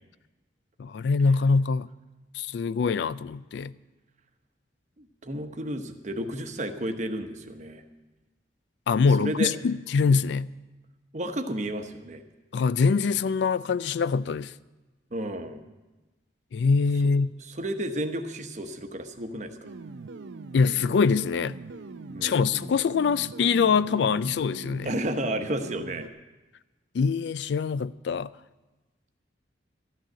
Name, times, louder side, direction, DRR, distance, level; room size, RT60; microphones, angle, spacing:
voice 1, 0.8-1.9 2.3-3.8 8.9-10.5 12.5-14.5 16.5-17.4 20.5-21.6 22.2-24.9 26.9-28.3, left 5 dB, 70° left, 0.3 m, -24 dB
voice 2, 5.0-7.8 9.2-9.5 11.1-12.2 15.1-15.6 17.6-19.6 22.1-22.4 24.8-26.1, right 1 dB, 40° right, 0.9 m, -32 dB
sound 1, 19.6-26.1, right 3 dB, 80° right, 0.6 m, -41 dB
13.0 x 6.5 x 9.8 m
head